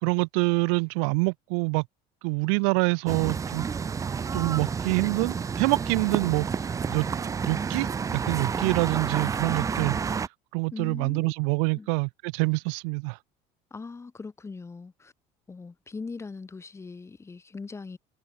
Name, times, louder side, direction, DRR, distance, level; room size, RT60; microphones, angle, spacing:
voice 1, 0.0-1.8 2.2-3.6 4.3-6.5 6.9-7.1 7.4-7.9 8.1-10.0 10.5-13.2, right 37 dB, 85° right, 1.5 m, -26 dB
sound 1, 3.1-10.3, right 6 dB, 20° right, 0.7 m, -30 dB
voice 2, 10.7-11.3 11.7-11.9 13.7-15.1 15.5-18.0, left 4 dB, 15° left, 7.4 m, -40 dB
cardioid pair, 135°, 16 cm